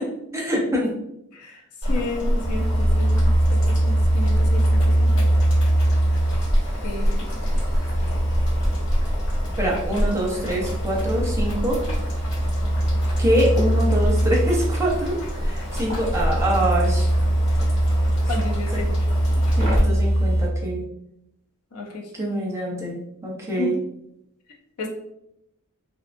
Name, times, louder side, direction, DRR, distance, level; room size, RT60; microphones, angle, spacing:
voice 1, 0.3-0.9 9.6-11.8 13.2-15.2 15.4-17.1 19.4-20.9 22.1-23.0 23.2-23.7, right 1 dB, 15° right, -3 dB, 0.5 m, -24 dB
Boiling, 1.8-19.8, equal, 70° left, 1.3 m, -28 dB
voice 2, 1.9-5.3 6.8-7.3 18.3-18.9 21.7-22.0 23.6-23.7 24.8-24.9, left 3 dB, 85° left, 2 dB, 0.5 m, -32 dB
sound 1, 2.4-20.5, right 1 dB, 35° left, 0.8 m, -22 dB
2.6 x 2.3 x 2.5 m, 0.81 s
head